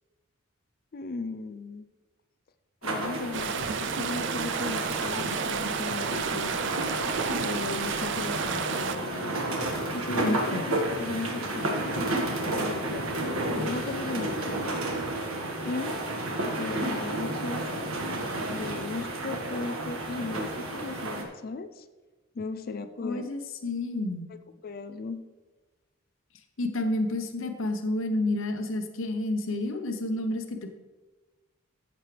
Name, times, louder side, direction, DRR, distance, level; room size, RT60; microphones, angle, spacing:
voice 1, 0.9-1.9 2.8-6.6 7.4-9.4 9.9-13.1 13.5-14.7 15.6-16.0 16.6-17.9 18.5-21.9 22.3-23.3 24.3-24.4 24.6-25.2, left 3 dB, 45° left, 11 dB, 0.4 m, -36 dB
sound 1, 2.8-21.2, right 1 dB, 80° right, 1.6 m, -31 dB
sound 2, 3.3-9.0, right 6 dB, 55° right, 0.5 m, -31 dB
voice 2, 10.2-10.6 23.0-24.3 26.6-30.7, left 2 dB, 65° left, 6 dB, 1.0 m, -30 dB
14.5 x 7.2 x 3.4 m, 1.2 s
head